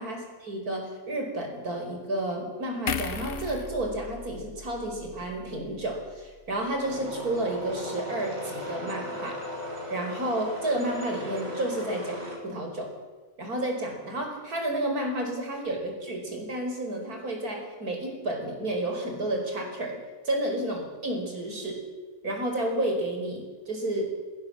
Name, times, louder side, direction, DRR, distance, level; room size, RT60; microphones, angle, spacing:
voice 1, 0.0-9.4 9.9-12.2 12.4-12.9 13.4-20.0 20.2-21.8 22.2-24.1, right 1 dB, 85° right, 2 dB, 5.5 m, -31 dB
sound 1, 2.9-6.2 6.6-6.8, left 6 dB, 45° left, 1.0 m, -37 dB
sound 2, 6.8-12.4, left 1 dB, 65° right, 4.9 m, -37 dB
20.0 x 17.5 x 7.7 m, 1.3 s
omnidirectional pair, 1.5 m